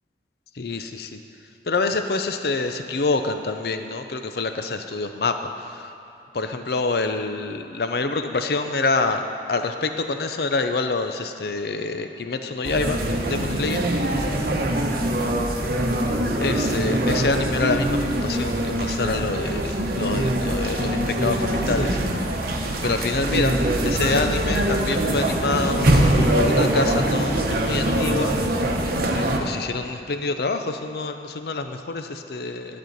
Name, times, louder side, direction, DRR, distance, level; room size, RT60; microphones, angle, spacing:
voice 1, 0.6-1.2 1.7-5.4 5.7-5.8 6.3-13.0 13.3-13.8 16.4-22.0 22.8-23.6 23.8-28.3 29.1-32.8, left 3 dB, 60° left, 7 dB, 0.5 m, -26 dB
sound 1, 12.6-29.4, right 1 dB, 55° right, 0.9 m, -23 dB
12.0 x 4.3 x 7.8 m, 2.9 s
head